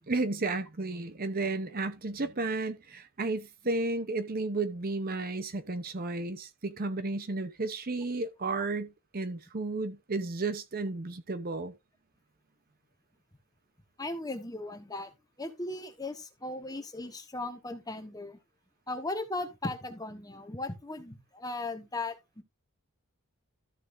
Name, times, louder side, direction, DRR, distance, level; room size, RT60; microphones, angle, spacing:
voice 1, 0.1-11.7, right 3 dB, 40° right, 0.8 m, -33 dB
voice 2, 14.0-15.1 15.4-18.4 18.9-22.4, left 2 dB, 15° left, 1.2 m, -37 dB
13.5 x 6.7 x 2.6 m
head